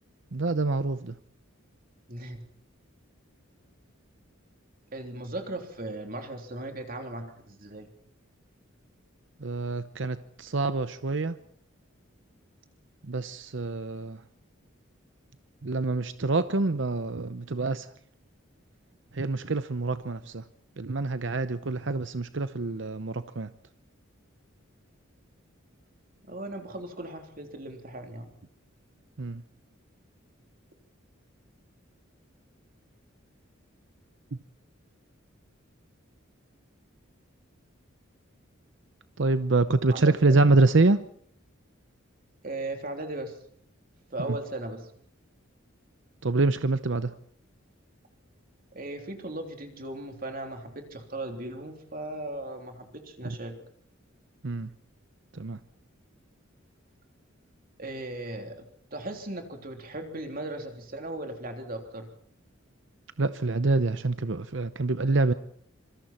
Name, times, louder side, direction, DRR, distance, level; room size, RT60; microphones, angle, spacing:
voice 1, 0.3-1.2 9.4-11.4 13.0-14.2 15.6-17.9 19.1-20.4 20.8-23.5 29.2-29.4 34.3-34.4 39.2-41.0 44.3-44.4 46.2-47.1 53.2-53.4 54.4-54.7 55.3-55.6 63.2-65.3, right 3 dB, 60° right, 12 dB, 0.8 m, -26 dB
voice 2, 2.1-2.4 4.9-7.9 26.3-28.3 39.9-40.4 42.4-43.4 44.1-44.9 48.7-53.6 57.8-62.1, right 2 dB, 45° right, 4 dB, 3.5 m, -37 dB
26.0 x 24.0 x 4.4 m, 0.62 s
head